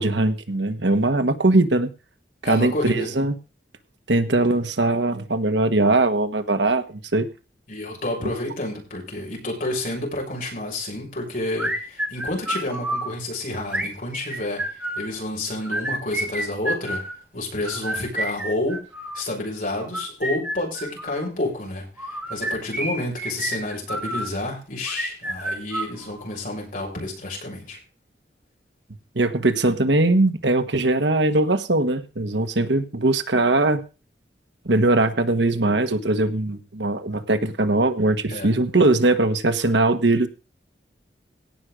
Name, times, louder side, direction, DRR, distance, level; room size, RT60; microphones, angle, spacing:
voice 1, 0.0-1.9 2.5-3.3 4.1-7.3 29.1-33.8 34.6-40.3, right 2 dB, 85° right, 9 dB, 1.5 m, -20 dB
voice 2, 2.4-3.1 7.7-17.0 17.3-18.8 19.1-27.8 38.3-38.5, left 1 dB, 50° left, -1 dB, 6.9 m, -29 dB
sound 1, 11.6-13.1 13.7-15.1 15.6-17.2 17.7-19.2 19.8-21.2 22.0-24.3 24.9-26.3, right 1 dB, 10° right, 3.2 m, -29 dB
17.5 x 6.3 x 5.2 m, 0.31 s
head